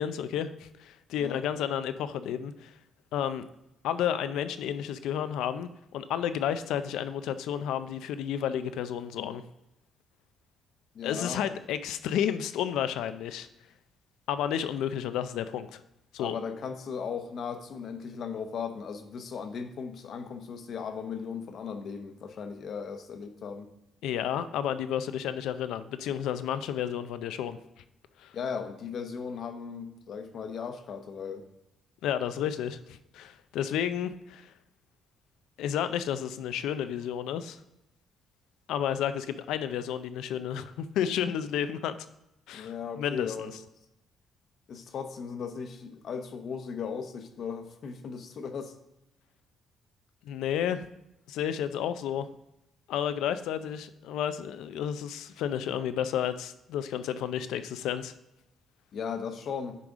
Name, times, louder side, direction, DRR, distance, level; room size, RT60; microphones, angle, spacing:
voice 1, 0.0-2.7 3.1-3.5 3.8-9.4 11.0-13.5 14.3-15.8 16.1-16.4 24.0-27.6 28.2-28.3 32.0-34.5 35.6-37.6 38.7-42.0 42.5-43.5 50.2-50.9 51.3-52.3 52.9-58.1, left 9 dB, 90° left, 12 dB, 0.4 m, -31 dB
voice 2, 10.9-11.5 16.2-23.7 28.3-31.4 42.5-43.5 44.7-48.7 58.9-59.8, left 6 dB, 60° left, 8 dB, 0.8 m, -37 dB
9.9 x 4.9 x 3.6 m, 0.87 s
cardioid pair, 90°, 0 cm